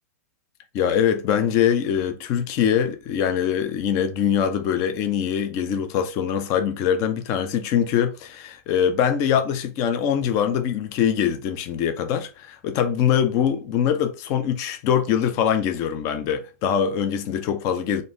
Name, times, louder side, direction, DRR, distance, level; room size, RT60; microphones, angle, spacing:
voice 1, 0.7-18.0, left 8 dB, 35° left, 0.6 m, -23 dB
3.7 x 2.7 x 3.5 m
hypercardioid pair, 140°, 9 cm